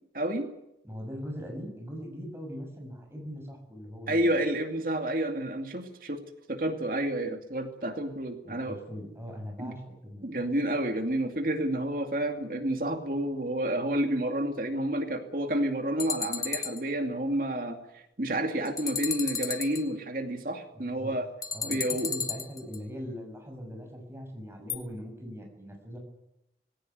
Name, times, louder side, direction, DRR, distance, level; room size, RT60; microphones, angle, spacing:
voice 1, 0.1-0.5 4.1-6.2 6.5-8.8 9.6-9.7 10.2-21.3 21.6-22.1, right 1 dB, 50° right, 5 dB, 2.4 m, -30 dB
voice 2, 0.8-4.3 8.4-10.3 21.0-21.1 21.5-26.0, equal, 15° right, 2 dB, 6.6 m, -41 dB
sound 1, 16.0-16.8 18.6-19.8 21.4-22.8 24.7-24.8, left 6 dB, 20° left, 1.2 m, -33 dB
19.5 x 17.0 x 9.4 m, 0.85 s
head